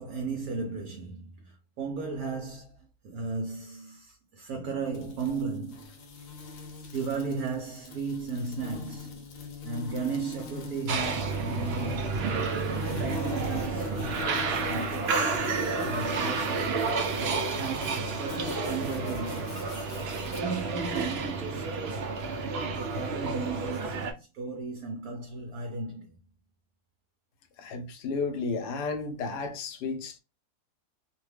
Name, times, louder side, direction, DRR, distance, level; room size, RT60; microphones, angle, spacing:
voice 1, 0.0-2.7 3.0-6.0 6.9-9.3 9.6-12.2 13.0-15.3 15.8-16.9 17.5-19.7 20.3-22.3 22.7-26.1, right 4 dB, 70° right, 1.1 m, -35 dB
sound 1, 4.9-20.4, left 6 dB, 65° left, 1.0 m, -43 dB
sound 2, 10.9-24.1, right 4 dB, 85° right, 0.5 m, -30 dB
voice 2, 27.6-30.2, left 4 dB, 90° left, 1.2 m, -33 dB
2.8 x 2.2 x 3.2 m
omnidirectional pair, 1.7 m